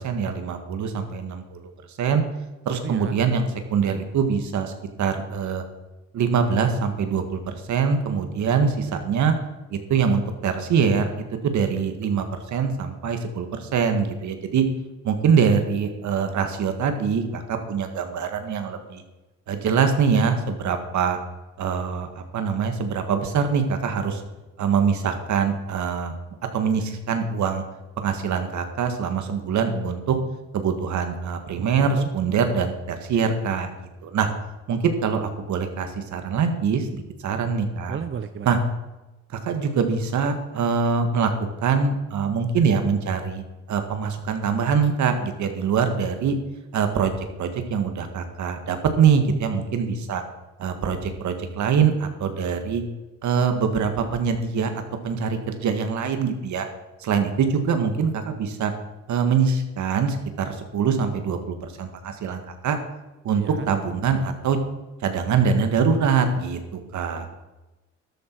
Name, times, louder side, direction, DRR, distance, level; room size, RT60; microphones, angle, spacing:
voice 1, 0.0-1.6 2.0-2.2 2.7-4.7 5.0-5.6 6.1-9.3 9.7-14.6 15.0-19.0 19.5-21.2 21.6-24.2 24.6-26.2 26.5-27.6 28.0-30.2 30.5-33.8 34.0-34.3 34.7-38.0 38.4-38.6 39.4-41.3 41.6-46.4 46.7-50.2 50.6-52.8 53.2-56.7 57.0-58.7 59.1-62.8 63.2-64.6 65.0-67.3, right 6 dB, 70° right, 7 dB, 1.9 m, -24 dB
voice 2, 2.8-3.2 31.5-32.1 37.9-38.6 63.4-63.7, right 7 dB, 40° right, 10 dB, 0.7 m, -33 dB
13.0 x 12.0 x 4.7 m, 1.1 s
cardioid pair, 90°, 30 cm